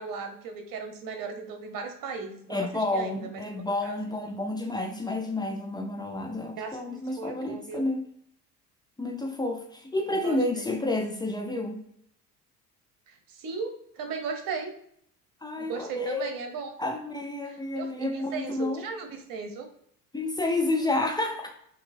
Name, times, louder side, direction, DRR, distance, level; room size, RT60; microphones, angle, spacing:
voice 1, 0.0-4.0 6.6-7.8 10.1-10.7 13.1-14.7 15.6-16.7 17.4-19.7, right 5 dB, 40° right, 5 dB, 1.0 m, -37 dB
voice 2, 2.5-8.0 9.0-11.8 15.4-16.3 16.8-18.8 20.1-21.5, left 2 dB, 10° left, 2 dB, 0.5 m, -30 dB
5.9 x 2.8 x 2.6 m, 0.69 s
figure-of-eight pair, 60°, 49 cm